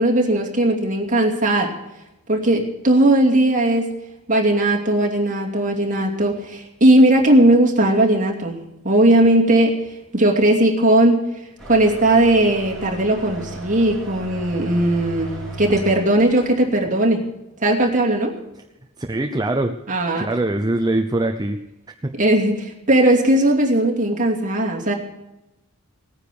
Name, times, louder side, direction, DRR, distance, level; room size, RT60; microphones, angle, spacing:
voice 1, 0.0-1.7 2.3-3.9 4.3-8.6 8.8-9.9 10.1-11.2 11.7-17.2 17.6-18.3 19.9-20.3 22.2-24.9, right 1 dB, 35° right, -1 dB, 2.7 m, -17 dB
sound 1, 11.6-16.7, right 2 dB, ahead, 3.9 m, -35 dB
voice 2, 19.0-19.8 20.2-21.6 22.0-22.1, right 2 dB, 20° right, 6 dB, 0.6 m, -22 dB
18.5 x 9.7 x 6.9 m, 0.93 s
head